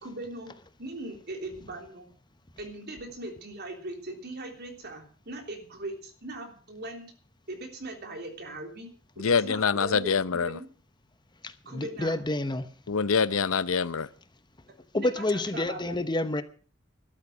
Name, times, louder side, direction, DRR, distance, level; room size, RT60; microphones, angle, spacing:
voice 1, 0.0-0.5 0.8-2.1 2.6-7.1 7.5-10.2 10.5-10.7 11.7-12.2 14.9-16.0, right 1 dB, 55° right, 3.4 m, -40 dB
voice 2, 9.2-10.6 12.9-14.1, left 5 dB, 85° left, 0.7 m, -25 dB
voice 3, 11.4-12.7 14.9-16.4, left 1 dB, 20° left, 0.9 m, -29 dB
13.0 x 12.5 x 6.2 m
head